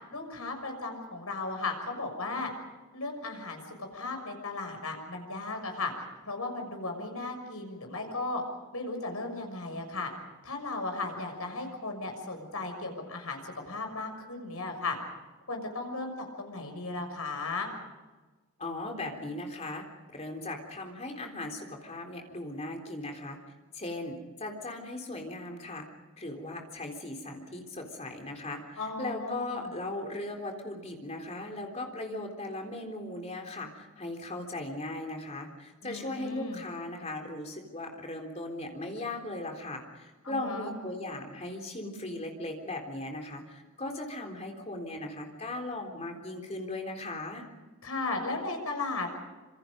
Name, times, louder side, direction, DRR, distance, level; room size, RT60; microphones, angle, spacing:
voice 1, 0.1-2.5 2.9-5.9 6.2-8.4 8.7-10.1 10.4-14.9 15.5-17.7 28.8-29.7 35.8-36.6 40.2-40.7 47.8-49.1, left 3 dB, 75° left, 4 dB, 6.4 m, -36 dB
voice 2, 18.6-19.8 20.1-23.4 23.7-25.9 26.2-47.4, left 2 dB, 30° left, 2 dB, 3.7 m, -38 dB
27.0 x 27.0 x 5.3 m, 1.2 s
head